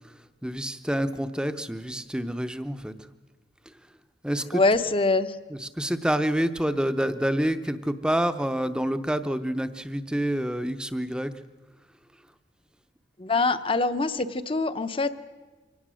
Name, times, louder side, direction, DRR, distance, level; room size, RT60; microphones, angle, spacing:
voice 1, 0.4-2.9 4.2-4.6 5.6-11.3, equal, 5° right, 10 dB, 0.7 m, -27 dB
voice 2, 4.5-5.4 13.2-15.1, left 3 dB, 30° left, 10 dB, 0.8 m, -24 dB
24.5 x 18.0 x 6.3 m, 1.3 s
head